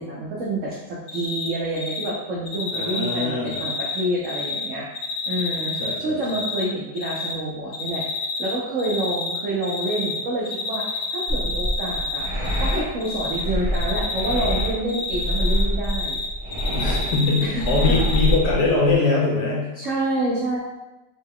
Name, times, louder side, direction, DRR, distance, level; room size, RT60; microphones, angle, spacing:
voice 1, 0.0-4.9 5.2-12.3 12.6-16.2 17.4-18.0 19.8-20.6, right 1 dB, 80° right, -4 dB, 0.6 m, -28 dB
Cricket, 1.1-1.5 1.8-2.1 2.5-4.6 4.9-6.6 7.0-7.3 7.7-8.5 8.8-10.2 10.4-12.8 13.0-13.4 13.7-16.2 16.5-18.3, left 3 dB, 80° left, 0.6 m, -29 dB
voice 2, 2.7-3.6 5.8-6.4 16.7-19.7, left 3 dB, 65° left, -3 dB, 1.1 m, -22 dB
sound 1, 11.3-18.9, equal, 30° left, 0.6 m, -25 dB
3.8 x 2.2 x 3.5 m, 1.0 s
omnidirectional pair, 2.1 m